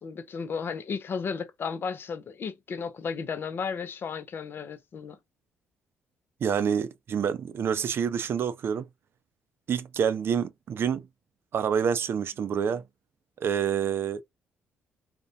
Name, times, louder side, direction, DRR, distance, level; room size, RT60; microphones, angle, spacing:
voice 1, 0.0-5.2, left 6 dB, 45° left, 0.4 m, -34 dB
voice 2, 6.4-8.9 9.7-11.0 11.5-12.8 13.4-14.2, right 7 dB, 50° right, 0.4 m, -27 dB
2.5 x 2.1 x 2.6 m
hypercardioid pair, 45°, 5 cm